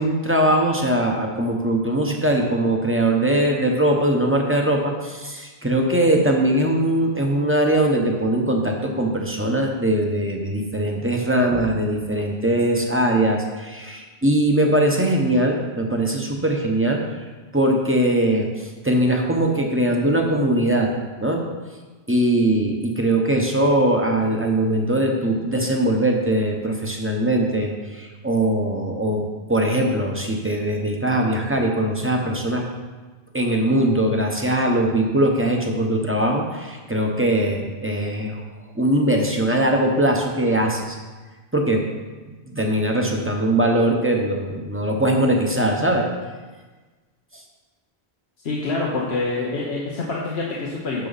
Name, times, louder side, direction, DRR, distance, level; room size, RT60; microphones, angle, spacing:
voice 1, 0.0-17.0 17.5-20.9 21.2-21.4 22.1-29.2 29.5-32.6 33.3-38.4 38.8-41.0 41.5-41.8 42.5-46.1, right 1 dB, 15° right, 1 dB, 1.0 m, -21 dB
voice 2, 48.4-51.1, left 3 dB, 85° left, -3 dB, 1.3 m, -26 dB
9.5 x 6.6 x 4.1 m, 1.3 s
omnidirectional pair, 1.1 m